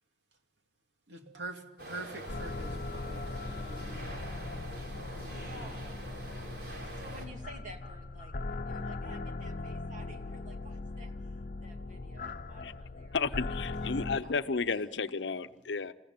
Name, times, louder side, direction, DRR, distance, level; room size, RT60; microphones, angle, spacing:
voice 1, 1.1-4.1 5.1-5.9, right 2 dB, 85° right, 2.5 m, -46 dB
sound 1, 1.8-7.3, right 1 dB, 65° right, 4.5 m, -45 dB
sound 2, 2.3-14.2, left 3 dB, 50° left, 0.8 m, -39 dB
voice 2, 4.9-6.0 7.0-8.3 8.7-11.3 11.6-13.6 14.0-14.8, right 1 dB, 45° right, 2.6 m, -52 dB
voice 3, 13.1-15.9, left 4 dB, 90° left, 0.7 m, -32 dB
28.0 x 15.5 x 9.5 m
head